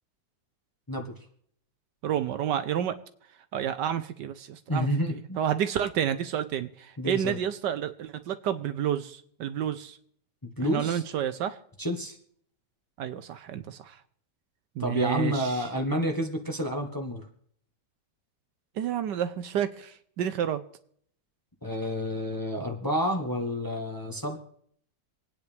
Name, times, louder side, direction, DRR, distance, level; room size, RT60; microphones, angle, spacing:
voice 1, 2.0-3.0 3.5-10.0 10.7-11.6 13.0-13.9 14.8-15.6 18.8-20.6, right 9 dB, 70° right, 11 dB, 1.3 m, -30 dB
voice 2, 4.7-5.4 7.0-7.4 10.4-11.0 11.8-12.2 14.8-17.3 21.6-24.4, equal, 15° left, 2 dB, 1.2 m, -29 dB
27.0 x 9.5 x 3.4 m, 0.64 s
omnidirectional pair, 2.0 m